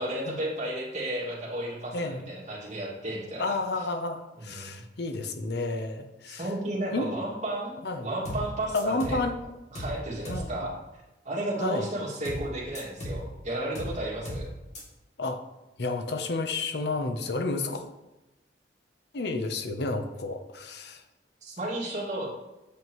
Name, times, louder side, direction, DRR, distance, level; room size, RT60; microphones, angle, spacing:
voice 1, 0.0-3.8 4.4-4.8 6.3-9.2 9.7-10.7 11.2-14.5 21.4-22.3, right 1 dB, 45° right, -4 dB, 2.1 m, -33 dB
voice 2, 1.9-2.3 3.4-6.4 6.9-7.1 7.8-8.1 8.7-9.3 10.3-10.6 11.6-11.9 15.2-15.4 15.8-17.9 19.1-21.0, left 3 dB, 65° left, 7 dB, 0.8 m, -31 dB
sound 1, 8.3-8.5 8.8-9.2 9.8-10.0 10.3-10.5 12.3-12.5 12.8-13.2 13.8-14.0 14.3-14.5 14.8-14.9, equal, 40° left, 2.3 m, -35 dB
8.4 x 7.4 x 3.1 m, 1.0 s
head